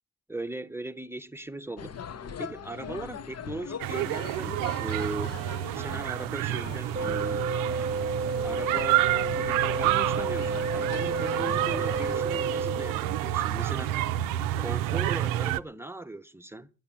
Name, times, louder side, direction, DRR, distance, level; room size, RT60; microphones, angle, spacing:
voice 1, 0.3-2.0 2.4-5.4 5.7-7.5 8.4-13.9 14.6-16.7, right 2 dB, 5° right, 1.0 m, -38 dB
sound 1, 1.8-12.2, left 7 dB, 50° left, 0.9 m, -41 dB
sound 2, 3.8-15.6, right 14 dB, 85° right, 0.5 m, -29 dB
sound 3, 7.0-13.0, right 3 dB, 25° right, 1.2 m, -31 dB
11.0 x 8.6 x 8.8 m
hypercardioid pair, 40°, 33 cm